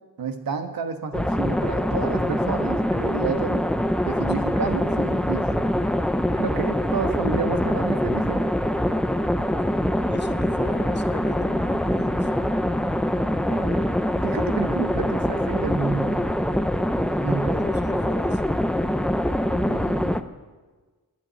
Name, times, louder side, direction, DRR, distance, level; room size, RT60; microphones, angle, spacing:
voice 1, 0.2-3.7 4.0-5.5 6.4-8.4 13.5-13.9 14.2-16.2 17.2-17.5 19.5-20.3, right 5 dB, 75° right, 6 dB, 1.4 m, -30 dB
sound 1, 1.1-20.2, left 1 dB, ahead, 0.5 m, -24 dB
voice 2, 10.1-12.3 17.5-18.4, left 4 dB, 30° left, 7 dB, 1.1 m, -38 dB
11.0 x 9.4 x 9.2 m, 1.3 s
wide cardioid pair, 105°, 35 cm